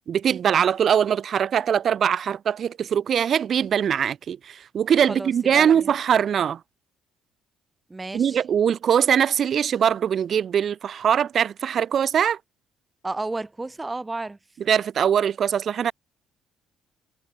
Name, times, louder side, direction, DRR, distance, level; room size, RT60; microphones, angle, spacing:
voice 1, 0.1-6.6 8.1-12.4 14.7-15.9, right 8 dB, 55° right, 0.6 m, -22 dB
voice 2, 5.1-5.9 7.9-8.4 13.0-14.4, right 2 dB, 20° right, 4.5 m, -32 dB
hypercardioid pair, 60°, 0 cm